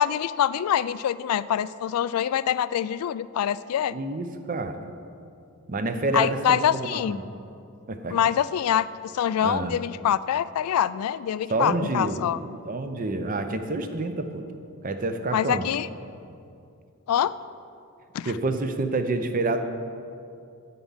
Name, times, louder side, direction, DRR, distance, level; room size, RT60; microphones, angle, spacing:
voice 1, 0.0-3.9 6.1-7.2 8.1-12.4 15.3-15.9 17.1-17.3 18.1-18.3, left 9 dB, 75° left, 17 dB, 0.3 m, -25 dB
voice 2, 3.9-4.8 5.7-7.2 7.9-8.2 9.4-9.7 11.5-12.2 12.6-14.4 14.8-15.6 18.3-19.6, right 2 dB, 40° right, 8 dB, 0.6 m, -28 dB
9.4 x 8.5 x 5.6 m, 2.5 s
head